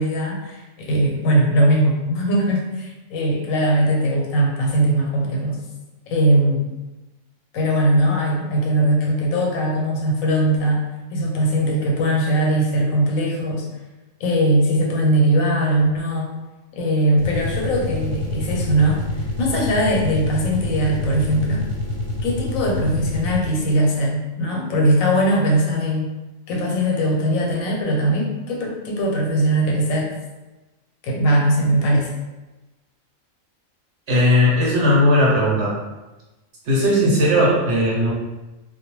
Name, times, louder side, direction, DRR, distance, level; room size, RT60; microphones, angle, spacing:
voice 1, 0.0-5.6 6.1-6.7 7.5-10.8 11.1-13.7 14.2-16.3 16.7-21.6 22.2-26.1 26.5-30.1 31.0-32.1, right 1 dB, 85° left, -1 dB, 1.0 m, -20 dB
sound 1, 17.1-23.7, left 2 dB, 85° right, 1.1 m, -27 dB
voice 2, 34.1-35.7 36.7-38.1, left 1 dB, 60° right, -5 dB, 0.9 m, -17 dB
2.2 x 2.2 x 2.9 m, 1.1 s
omnidirectional pair, 1.4 m